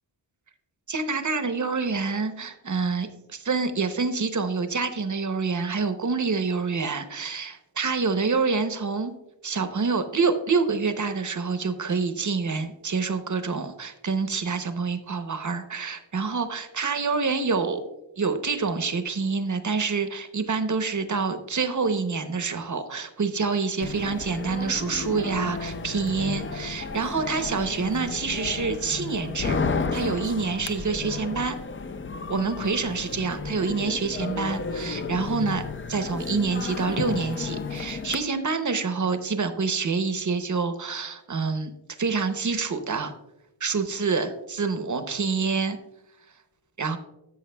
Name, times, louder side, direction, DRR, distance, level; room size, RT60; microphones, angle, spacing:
voice 1, 0.9-9.1 9.4-17.8 18.2-29.6 29.9-31.6 32.3-35.6 35.9-41.7 42.0-43.1 43.6-45.8 46.8-47.0, right 4 dB, 40° right, 9 dB, 0.7 m, -27 dB
sound 1, 23.8-38.2, left 4 dB, 30° left, 0.3 m, -32 dB
13.5 x 6.5 x 2.2 m, 0.93 s
wide cardioid pair, 115°, 49 cm